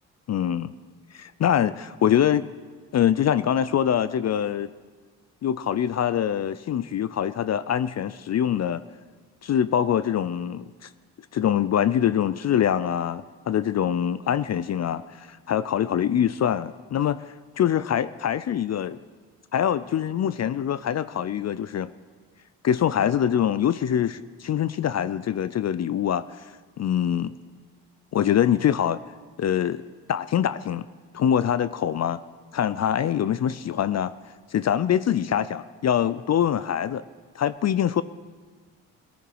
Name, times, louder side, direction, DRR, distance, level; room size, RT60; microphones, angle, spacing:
voice 1, 0.3-0.7 1.1-2.4 2.9-4.7 5.4-8.8 9.4-10.9 11.3-19.0 19.5-21.9 22.6-26.5 26.8-27.3 28.1-29.0 29.4-29.8 30.1-30.8 31.1-32.2 32.5-34.1 34.5-37.0 37.3-38.0, left 9 dB, 45° left, 15 dB, 0.5 m, -24 dB
17.5 x 10.5 x 4.8 m, 1.5 s
supercardioid pair, 55°, 39 cm